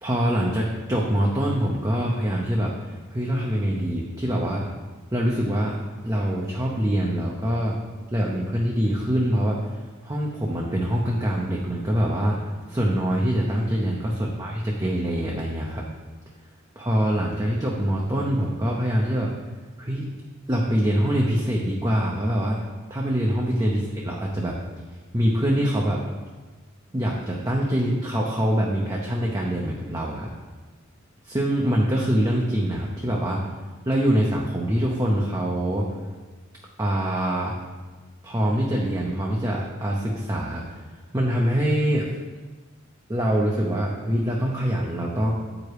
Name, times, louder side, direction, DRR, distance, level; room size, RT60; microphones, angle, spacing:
voice 1, 0.0-4.6 5.1-5.7 6.0-7.8 8.1-9.7 10.0-15.9 16.8-19.3 19.8-20.1 20.5-22.6 22.9-24.6 25.1-26.0 26.9-30.3 31.2-33.4 33.8-35.9 36.8-37.6 38.2-40.6 41.1-42.1 43.1-45.3, equal, 15° right, -2 dB, 0.7 m, -24 dB
8.2 x 4.9 x 4.7 m, 1.3 s
head